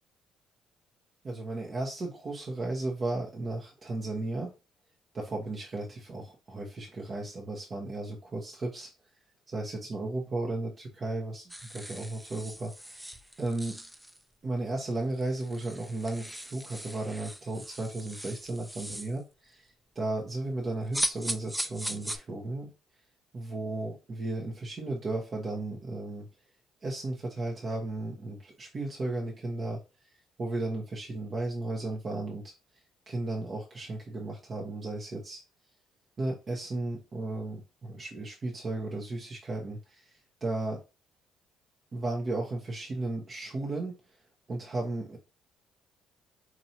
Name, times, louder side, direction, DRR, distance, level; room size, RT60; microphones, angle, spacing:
voice 1, 1.2-4.5 5.1-8.9 9.5-13.1 13.4-13.8 14.4-22.7 23.3-26.3 26.8-29.8 30.4-32.5 33.1-35.4 36.2-40.1 40.4-40.8 41.9-43.9 44.5-45.2, right 2 dB, 40° right, -2 dB, 0.9 m, -34 dB
sound 1, 11.5-14.2 14.9-15.0 15.2-19.2 20.9-22.2, right 1 dB, 5° right, 0.4 m, -38 dB
4.3 x 2.6 x 2.8 m, 0.30 s
supercardioid pair, 65°, 0 cm